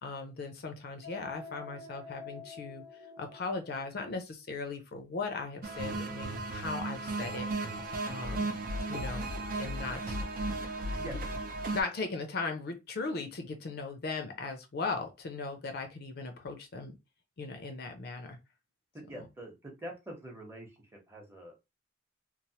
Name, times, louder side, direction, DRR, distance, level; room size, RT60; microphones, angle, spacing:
voice 1, 0.0-2.8 3.2-7.5 8.1-8.5 8.9-9.2 9.6-10.2 11.7-16.9 17.4-18.4 19.2-19.3, left 4 dB, 50° left, 0.5 m, -38 dB
sound 1, 1.0-3.8, left 3 dB, 85° right, 0.8 m, -47 dB
sound 2, 5.6-11.8, right 2 dB, 45° right, 0.5 m, -35 dB
voice 2, 18.9-20.7 21.1-21.6, equal, 10° right, 0.8 m, -44 dB
3.0 x 2.0 x 2.7 m
head